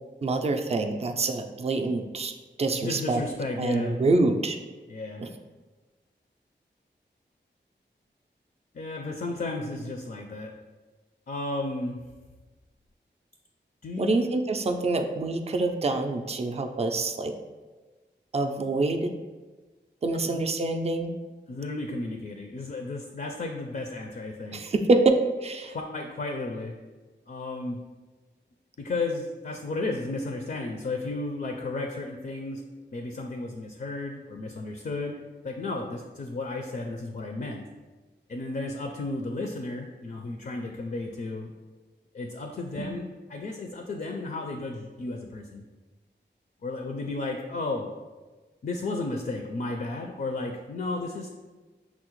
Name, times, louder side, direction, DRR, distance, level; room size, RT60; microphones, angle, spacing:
voice 1, 0.2-2.3 2.6-3.2 3.6-4.6 5.2-5.3 14.0-17.3 18.3-19.1 20.0-21.1 24.5-25.8 42.8-42.9, right 3 dB, 35° right, 5 dB, 0.3 m, -26 dB
voice 2, 2.8-4.0 4.9-5.2 8.7-10.5 11.3-12.0 13.8-14.2 20.1-20.4 21.5-24.6 25.6-26.7 27.3-27.8 28.8-32.6 32.9-35.2 35.4-37.6 38.3-41.5 42.1-45.6 46.6-47.9 48.6-51.3, left 2 dB, 50° left, 2 dB, 0.4 m, -33 dB
5.7 x 2.0 x 3.0 m, 1.3 s
wide cardioid pair, 50°, 19 cm